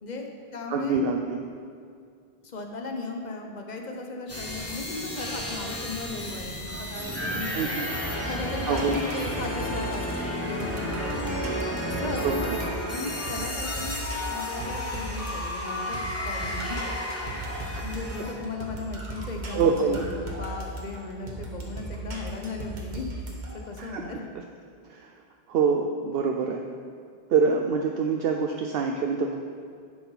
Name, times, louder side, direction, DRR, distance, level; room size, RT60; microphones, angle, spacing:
voice 1, 0.0-1.0 2.4-7.8 8.2-11.4 11.8-16.8 17.8-23.3 23.7-24.3, left 3 dB, 45° left, 2 dB, 0.9 m, -37 dB
voice 2, 0.7-1.4 7.5-7.9 8.7-9.0 12.2-12.6 17.7-17.8 19.5-20.1 23.8-24.0 24.9-25.1 25.5-26.6 27.3-29.4, right 5 dB, 70° right, 2 dB, 0.7 m, -25 dB
sound 1, 4.3-18.3, left 1 dB, 15° left, 1.3 m, -32 dB
sound 2, 7.3-23.8, right 1 dB, 50° right, 1.1 m, -37 dB
10.0 x 6.0 x 4.1 m, 2.3 s
omnidirectional pair, 1.1 m